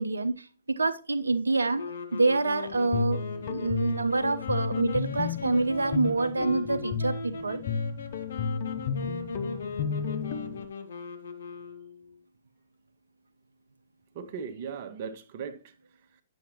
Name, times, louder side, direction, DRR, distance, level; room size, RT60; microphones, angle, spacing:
voice 1, 0.0-1.8 2.1-7.6, right 3 dB, 70° right, 0.7 m, -27 dB
sound 1, 1.8-12.2, left 3 dB, 60° left, 1.6 m, -38 dB
Guitar, 2.7-10.7, left 6 dB, 35° left, 0.9 m, -33 dB
voice 2, 14.1-16.2, right 6 dB, 40° right, 1.2 m, -39 dB
10.0 x 7.2 x 2.9 m
figure-of-eight pair, 120°, 0 cm